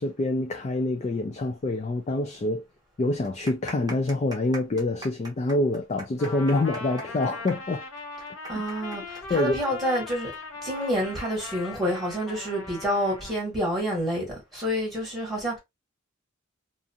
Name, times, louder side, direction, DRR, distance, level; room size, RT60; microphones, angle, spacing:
voice 1, 0.0-2.6 3.0-7.8 9.3-9.6, left 2 dB, 35° left, 0.3 m, -26 dB
sound 1, 2.0-2.1 2.4-2.5 3.1-10.4 10.7-10.8 11.5-11.8, right 2 dB, 20° right, 0.6 m, -42 dB
Trumpet, 6.2-13.4, left 2 dB, 70° left, 0.8 m, -39 dB
voice 2, 8.5-10.3 10.6-15.6, equal, ahead, 1.2 m, -28 dB
2.5 x 2.4 x 2.6 m
head